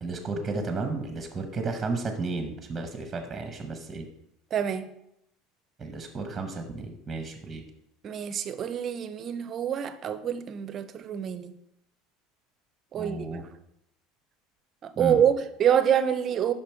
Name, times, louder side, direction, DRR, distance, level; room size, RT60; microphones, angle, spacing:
voice 1, 0.0-4.1 5.8-7.6 12.9-13.4 15.0-15.2, right 3 dB, 15° right, 6 dB, 0.9 m, -33 dB
voice 2, 4.5-4.9 8.0-11.5 12.9-13.2 14.8-16.5, right 9 dB, 35° right, 12 dB, 0.5 m, -26 dB
5.5 x 5.2 x 4.4 m, 0.79 s
supercardioid pair, 130°, 0 cm